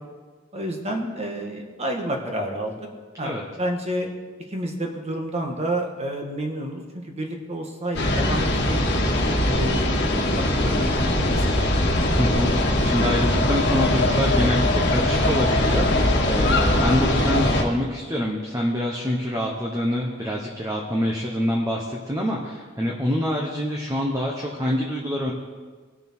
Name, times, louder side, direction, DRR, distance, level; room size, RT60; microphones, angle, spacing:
voice 1, 0.5-2.9 3.2-4.1 4.5-8.8 9.4-11.9, right 1 dB, 30° right, 2 dB, 1.6 m, -30 dB
sound 1, 7.9-17.6, left 1 dB, 55° left, 1.7 m, -21 dB
voice 2, 12.2-25.3, equal, 15° right, -1 dB, 1.1 m, -26 dB
20.0 x 6.6 x 4.6 m, 1.4 s
head